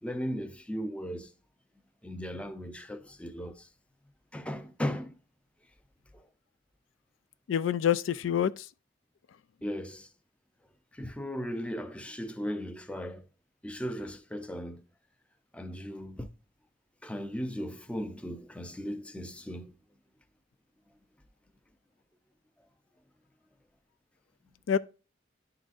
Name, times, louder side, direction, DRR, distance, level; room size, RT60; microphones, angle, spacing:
voice 1, 0.0-1.3 2.0-3.7 4.3-5.2 6.1-6.3 9.6-10.1 10.9-13.2 13.6-14.8 15.5-16.3 17.0-19.7, equal, 5° left, 0.5 m, -37 dB
voice 2, 7.5-8.7 24.7-24.8, left 9 dB, 90° left, 0.3 m, -26 dB
10.5 x 3.8 x 2.4 m
head